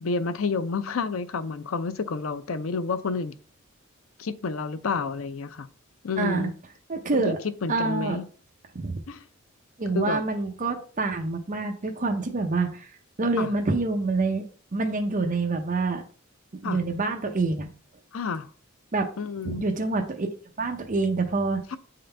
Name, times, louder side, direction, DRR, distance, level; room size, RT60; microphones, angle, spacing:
voice 1, 0.0-3.4 4.2-5.7 6.0-6.5 7.1-8.2 9.1-9.3 9.9-10.2 13.4-13.5 16.6-16.8 18.1-18.5 19.2-19.6 21.7-21.8, left 4 dB, 80° left, 0.5 m, -29 dB
voice 2, 6.2-6.5 6.9-7.4 7.7-8.2 8.7-9.0 9.8-12.9 13.2-14.4 14.7-16.0 16.6-17.7 18.9-19.1 19.4-20.3 20.6-21.6, right 3 dB, 40° right, 0.7 m, -26 dB
7.8 x 3.8 x 3.3 m
head